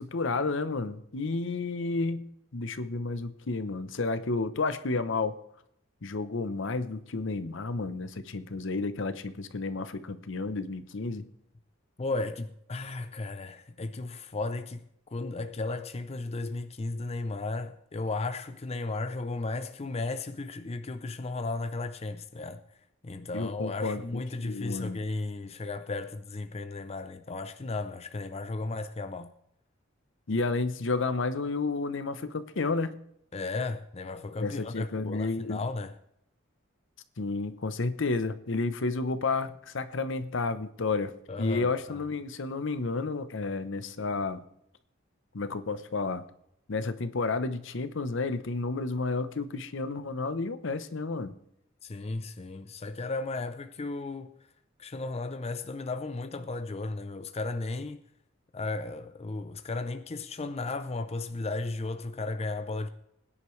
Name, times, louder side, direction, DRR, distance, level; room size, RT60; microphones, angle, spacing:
voice 1, 0.0-5.4 6.0-11.3 23.3-25.0 30.3-33.0 34.4-35.7 37.2-41.1 41.4-44.4 45.3-46.2 46.7-51.3, left 3 dB, 65° left, 0.8 m, -31 dB
voice 2, 12.0-14.8 15.1-22.6 23.0-29.3 33.3-35.9 41.3-42.0 51.8-54.3 54.8-58.0 58.5-62.9, left 3 dB, 30° left, 0.6 m, -35 dB
20.5 x 10.0 x 3.2 m
head